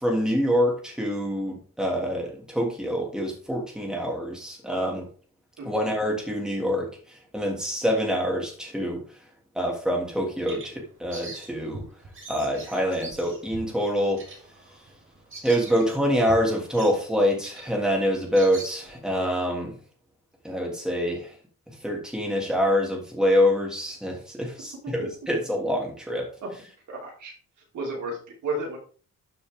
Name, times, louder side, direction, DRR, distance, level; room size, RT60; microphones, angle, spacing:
voice 1, 0.0-5.1 5.6-9.0 9.5-11.8 12.3-14.2 15.4-19.7 20.4-21.3 21.8-26.3, equal, ahead, -1 dB, 3.0 m, -26 dB
Bird vocalization bird call bird song, 10.0-19.2, right 2 dB, 35° right, 4.0 m, -43 dB
voice 2, 26.9-27.3 27.7-28.8, right 2 dB, 60° right, -2 dB, 5.2 m, -32 dB
13.0 x 6.9 x 3.7 m, 0.39 s
cardioid pair, 145°, 33 cm